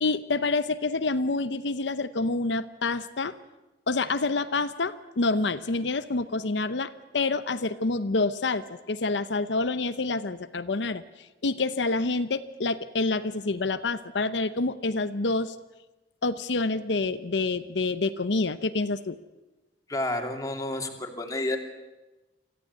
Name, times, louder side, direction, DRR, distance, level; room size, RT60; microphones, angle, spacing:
voice 1, 0.0-3.3 3.9-15.6 16.2-19.2, left 3 dB, 90° left, 11 dB, 0.8 m, -27 dB
voice 2, 19.9-21.6, left 1 dB, 20° left, 3 dB, 2.7 m, -30 dB
26.0 x 14.5 x 9.6 m, 1.1 s
head